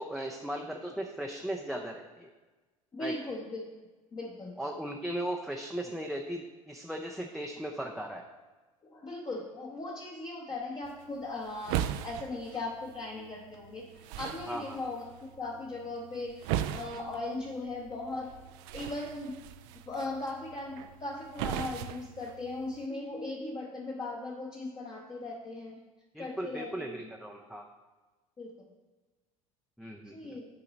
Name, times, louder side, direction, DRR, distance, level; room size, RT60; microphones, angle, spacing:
voice 1, 0.0-2.3 3.0-3.2 4.6-8.3 14.5-14.8 26.1-27.7 29.8-30.4, right 1 dB, ahead, 0 dB, 0.5 m, -37 dB
voice 2, 2.9-3.7 4.1-4.6 8.8-13.9 14.2-18.4 18.7-19.4 19.8-25.8 26.2-27.1 28.4-28.7 30.0-30.5, left 2 dB, 25° left, -1 dB, 1.0 m, -38 dB
sound 1, 10.8-22.9, right 11 dB, 55° right, 0.4 m, -39 dB
10.5 x 3.8 x 4.1 m, 1.2 s
figure-of-eight pair, 70°, 18 cm